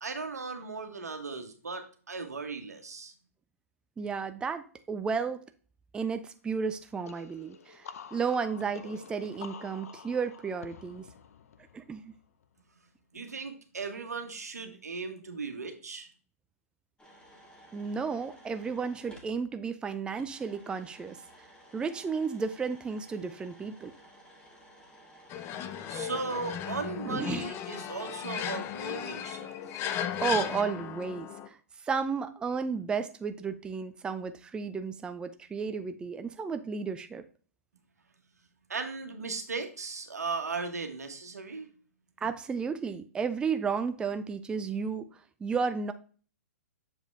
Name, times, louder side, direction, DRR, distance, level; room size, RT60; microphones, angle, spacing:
voice 1, 0.0-3.1 13.1-16.1 25.9-29.6 38.7-41.7, right 4 dB, 90° right, 5 dB, 1.4 m, -37 dB
voice 2, 4.0-5.4 5.9-11.0 11.7-12.1 17.7-21.2 21.7-23.9 27.1-27.4 30.2-31.6 31.8-37.2 42.2-45.1 45.4-45.9, right 5 dB, 10° right, 9 dB, 0.4 m, -33 dB
sound 1, 7.0-12.6, left 7 dB, 70° left, 0.7 m, -49 dB
sound 2, 17.0-19.3 20.2-26.6, equal, 10° left, 1.8 m, -55 dB
sound 3, 25.3-31.5, left 9 dB, 30° left, 0.6 m, -36 dB
7.1 x 5.1 x 3.4 m, 0.40 s
hypercardioid pair, 120°, 8 cm